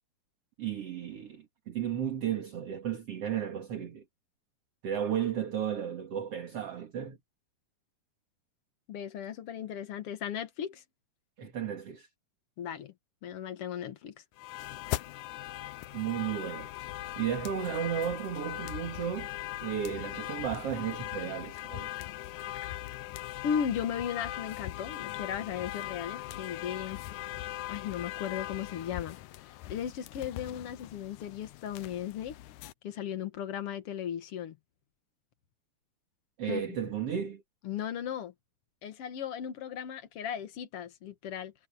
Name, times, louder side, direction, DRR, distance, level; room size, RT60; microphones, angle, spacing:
voice 1, 0.6-4.0 4.8-7.2 11.4-12.1 15.9-16.7 17.2-19.3 19.6-21.9 36.4-37.4, right 9 dB, 45° right, 2.7 m, -34 dB
voice 2, 8.9-10.8 12.6-12.9 13.2-14.1 23.4-27.0 27.7-32.3 32.8-34.6 36.5-36.6 37.6-38.3 38.8-41.5, left 9 dB, 60° left, 1.6 m, -36 dB
sound 1, 14.4-32.7, left 15 dB, 90° left, 1.7 m, -40 dB
omnidirectional pair, 4.3 m